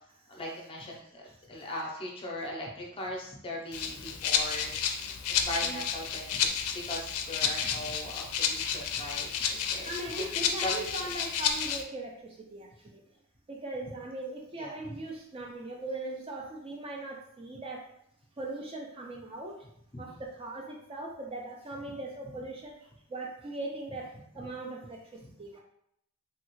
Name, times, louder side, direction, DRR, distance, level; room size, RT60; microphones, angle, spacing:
voice 1, 0.3-4.8 5.3-10.3 10.6-11.1 14.6-14.9 19.9-20.2 25.2-25.3, left 1 dB, 25° left, -1 dB, 0.6 m, -39 dB
Rattle (instrument), 3.7-11.8, left 7 dB, 80° left, 0.4 m, -31 dB
voice 2, 9.8-13.0 13.5-17.9 18.4-19.7 20.0-25.6, right 2 dB, 25° right, 0 dB, 0.3 m, -40 dB
3.3 x 2.3 x 3.0 m, 0.73 s
head